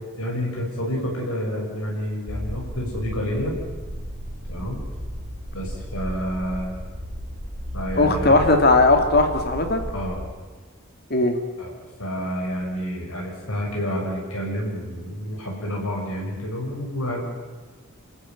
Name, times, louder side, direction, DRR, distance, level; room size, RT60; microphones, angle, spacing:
voice 1, 0.2-3.6 4.5-4.8 5.5-6.7 7.7-8.4 9.9-10.2 11.6-11.7 12.0-17.2, equal, 75° left, -1 dB, 6.9 m, -29 dB
sound 1, 2.3-10.3, equal, 50° right, 4.0 m, -34 dB
voice 2, 8.0-9.8 11.1-11.4, left 2 dB, 45° left, 6 dB, 3.0 m, -18 dB
29.0 x 14.0 x 9.6 m, 1.3 s
head